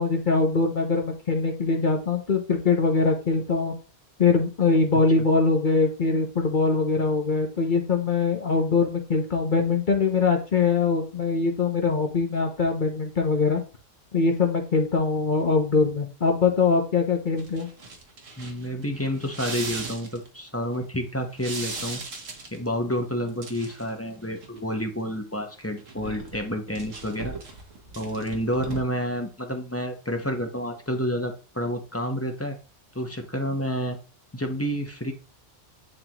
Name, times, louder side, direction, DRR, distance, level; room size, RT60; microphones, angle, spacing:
voice 1, 0.0-3.7 4.2-13.6 14.1-17.7, left 4 dB, 45° left, 3 dB, 1.0 m, -22 dB
sound 1, 17.4-20.3 21.4-22.7 23.3-24.0 24.2-24.6 25.6-28.8, right 3 dB, 80° right, 1.5 m, -38 dB
voice 2, 18.4-22.0 22.5-27.4 28.0-32.6 32.9-34.0 34.3-35.1, equal, 15° left, 3 dB, 0.8 m, -29 dB
9.8 x 3.7 x 3.0 m, 0.35 s
omnidirectional pair, 1.3 m